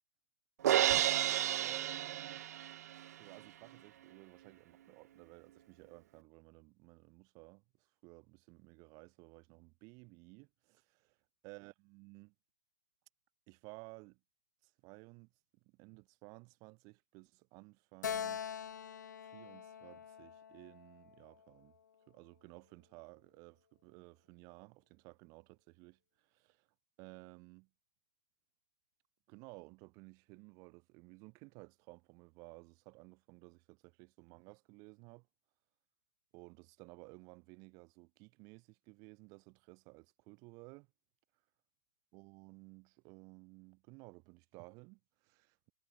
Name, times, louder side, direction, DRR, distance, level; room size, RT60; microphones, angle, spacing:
Crash cymbal, 0.6-2.9, right 12 dB, 55° right, 0.7 m, -31 dB
voice 1, 1.6-2.4 3.2-11.2 11.4-12.3 13.5-14.2 14.6-15.3 15.6-18.4 19.2-21.7 22.1-26.7 27.0-27.7 29.3-35.3 36.3-40.9 42.1-45.7, right 29 dB, 35° right, 7.3 m, -56 dB
Keyboard (musical), 18.0-21.5, left 8 dB, 70° left, 0.8 m, -43 dB
hypercardioid pair, 120°, 10 cm